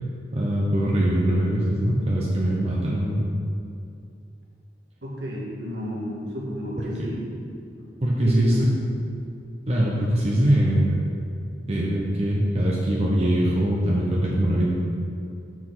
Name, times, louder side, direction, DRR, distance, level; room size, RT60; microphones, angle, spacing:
voice 1, 0.3-3.2 8.0-8.6 9.7-11.0 11.7-14.7, right 1 dB, 35° right, -4 dB, 0.7 m, -22 dB
voice 2, 5.0-7.2 7.8-7.9 8.2-8.4, equal, 70° right, -4 dB, 1.6 m, -32 dB
5.8 x 4.7 x 6.0 m, 2.6 s
head